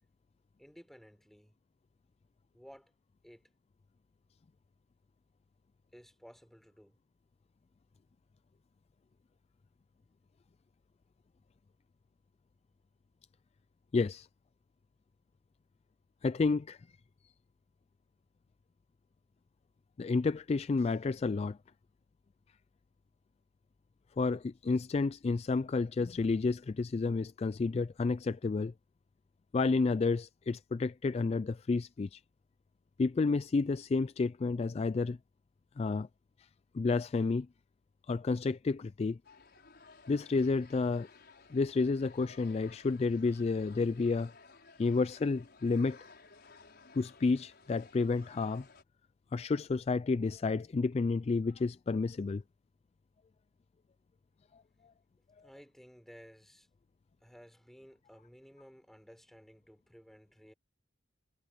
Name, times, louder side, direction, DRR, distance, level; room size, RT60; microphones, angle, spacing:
voice 1, 0.6-1.7 2.5-3.0 3.2-3.5 5.9-7.0 55.4-56.7 57.2-60.5, equal, ahead, 5.6 m, -56 dB
voice 2, 13.9-14.3 16.2-16.9 20.0-21.6 24.2-28.7 29.5-32.2 33.0-35.2 35.8-36.1 36.7-37.5 38.1-39.2 40.1-41.1 41.5-44.3 44.8-46.0 46.9-48.7 49.3-52.4 54.5-54.6, left 4 dB, 35° left, 0.3 m, -30 dB
sound 1, 39.2-48.8, left 4 dB, 55° left, 6.2 m, -57 dB
head